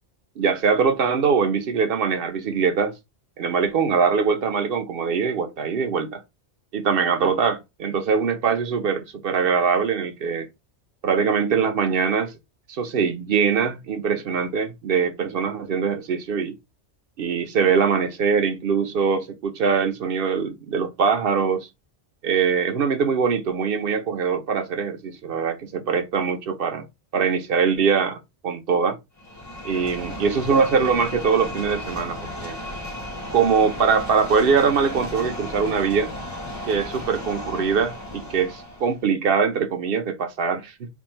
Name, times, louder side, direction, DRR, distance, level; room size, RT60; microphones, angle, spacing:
voice 1, 0.4-2.9 3.4-6.2 6.7-10.5 11.0-12.3 12.7-16.6 17.2-21.7 22.2-26.9 27.1-29.0 29.6-32.6 33.3-36.1 36.7-40.9, right 6 dB, 55° right, 0.9 m, -22 dB
sound 1, 29.2-39.0, left 1 dB, 15° left, 0.9 m, -34 dB
3.5 x 2.3 x 4.4 m
omnidirectional pair, 1.2 m